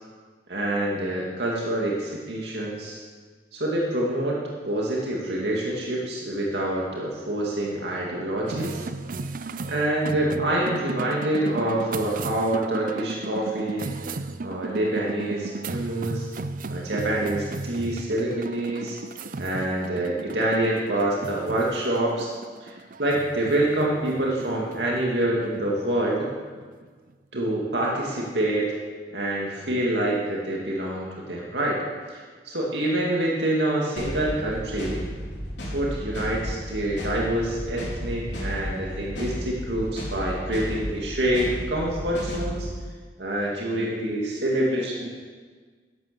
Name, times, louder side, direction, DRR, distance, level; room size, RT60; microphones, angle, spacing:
voice 1, 0.5-3.0 3.5-8.8 9.7-13.9 14.4-16.3 16.7-19.0 19.4-22.3 22.6-22.7 23.0-26.3 27.3-28.7 29.1-31.8 32.1-35.0 35.7-42.7 43.2-45.1, right 1 dB, 75° right, -3 dB, 2.3 m, -26 dB
sound 1, 8.5-27.1, right 3 dB, 50° right, 0.6 m, -36 dB
sound 2, 34.0-42.7, equal, 85° left, 4.3 m, -33 dB
12.5 x 11.0 x 6.9 m, 1.5 s
head